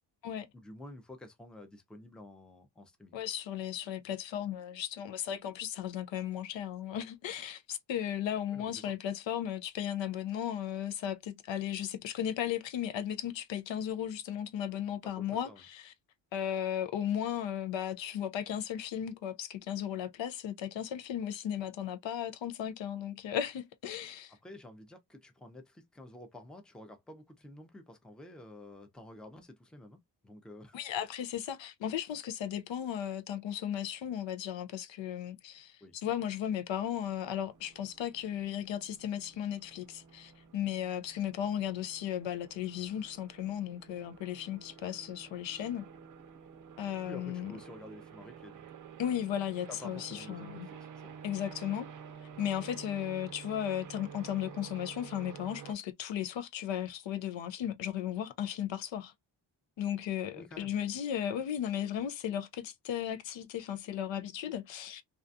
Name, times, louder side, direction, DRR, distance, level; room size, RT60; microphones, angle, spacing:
voice 1, 0.5-3.2 8.5-8.9 15.0-15.6 24.4-30.8 35.8-35.9 47.1-48.7 49.7-51.2 60.3-60.8, left 1 dB, ahead, 0.5 m, -50 dB
voice 2, 3.1-15.9 16.3-24.3 30.7-45.8 46.8-47.5 49.0-50.7 51.2-51.9 52.4-59.1 59.8-65.0, left 10 dB, 80° left, 0.6 m, -35 dB
sound 1, 37.0-55.7, right 7 dB, 45° right, 0.5 m, -51 dB
2.4 x 2.2 x 2.5 m
wide cardioid pair, 130°, 45 cm